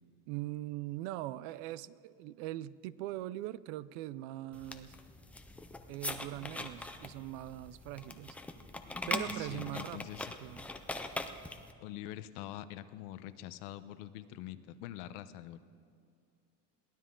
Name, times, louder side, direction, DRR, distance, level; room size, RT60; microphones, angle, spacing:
voice 1, 0.3-5.0 5.9-8.4 9.1-10.0 10.4-10.7, right 15 dB, 55° right, 18 dB, 0.5 m, -41 dB
sound 1, 4.5-11.7, left 2 dB, 5° left, 0.4 m, -41 dB
voice 2, 9.2-10.3 11.8-15.6, left 13 dB, 65° left, 13 dB, 0.9 m, -45 dB
22.0 x 16.5 x 3.8 m, 2.4 s
supercardioid pair, 155°, 39 cm